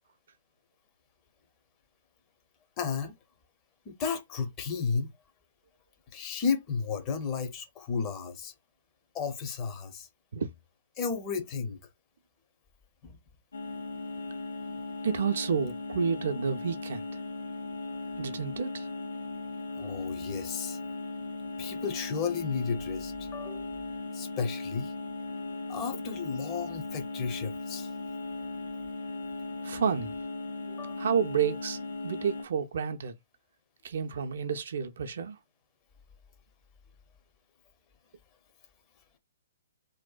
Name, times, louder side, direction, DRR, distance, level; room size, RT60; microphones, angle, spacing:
voice 1, 2.8-3.2 3.9-5.1 6.1-8.5 9.1-10.1 11.0-11.8 13.0-13.2 19.8-20.8 21.6-23.7 24.1-24.9 25.7-27.9 30.7-31.0, left 5 dB, 25° left, 0.6 m, -33 dB
sound 1, 13.5-32.5, left 3 dB, 70° left, 0.5 m, -38 dB
voice 2, 15.0-17.1 18.2-18.9 29.6-30.1 31.0-33.1 33.8-35.4, right 6 dB, 60° right, 0.4 m, -30 dB
2.6 x 2.1 x 2.3 m
figure-of-eight pair, 125°, 0 cm